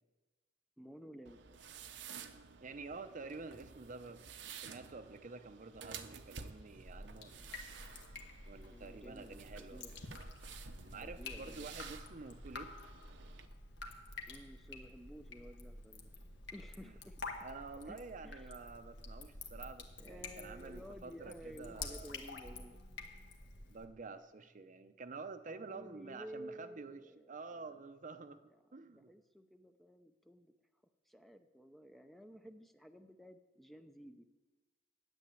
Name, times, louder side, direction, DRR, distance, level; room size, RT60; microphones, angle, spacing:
voice 1, 0.8-1.4 8.7-10.0 11.0-11.7 14.3-16.1 16.5-17.2 17.9-18.0 18.2-18.5 20.0-22.8 25.5-27.8 28.7-30.5 31.1-34.3, equal, ahead, 7 dB, 0.5 m, -53 dB
sound 1, 1.2-13.5, right 6 dB, 75° right, 0.8 m, -53 dB
voice 2, 2.6-7.6 8.5-10.0 10.8-12.7 16.8-17.0 17.4-22.2 23.7-28.4 28.7-29.1, right 4 dB, 45° right, 10 dB, 0.6 m, -49 dB
Drip, 6.9-23.8, left 3 dB, 70° left, 1.4 m, -49 dB
10.0 x 7.9 x 9.4 m, 1.3 s
head